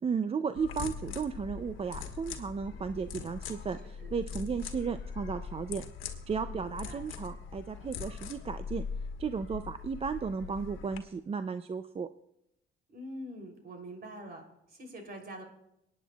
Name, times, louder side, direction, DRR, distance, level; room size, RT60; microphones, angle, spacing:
voice 1, 0.0-5.8 6.3-8.8 9.2-12.1, right 6 dB, 30° right, 11 dB, 0.4 m, -34 dB
sound 1, 0.6-11.0, left 6 dB, 85° left, 1.3 m, -41 dB
voice 2, 6.5-7.0 12.9-14.4 14.7-15.4, right 1 dB, 50° right, 3 dB, 3.2 m, -44 dB
25.5 x 9.4 x 2.3 m, 0.80 s
cardioid pair, 90°, 20 cm